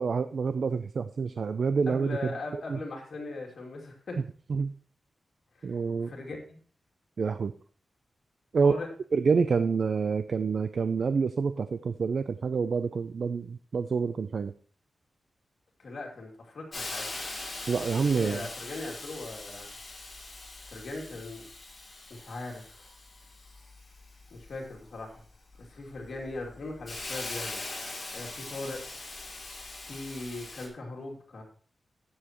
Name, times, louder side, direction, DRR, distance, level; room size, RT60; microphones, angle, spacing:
voice 1, 0.0-2.8 4.5-4.7 5.6-6.1 7.2-7.5 8.5-8.7 9.1-14.5 17.7-18.5, right 5 dB, 55° right, 11 dB, 0.4 m, -27 dB
voice 2, 1.9-4.2 5.5-5.8 6.0-6.6 8.6-8.9 15.8-17.2 18.0-19.7 20.6-21.4 22.1-22.8 24.3-25.2 25.6-27.6 28.1-28.8 29.9-31.4, left 2 dB, 60° left, 0 dB, 2.6 m, -39 dB
Hiss, 16.7-30.7, left 2 dB, 30° left, 2.9 m, -41 dB
16.5 x 7.2 x 3.0 m, 0.43 s
wide cardioid pair, 155°, 0 cm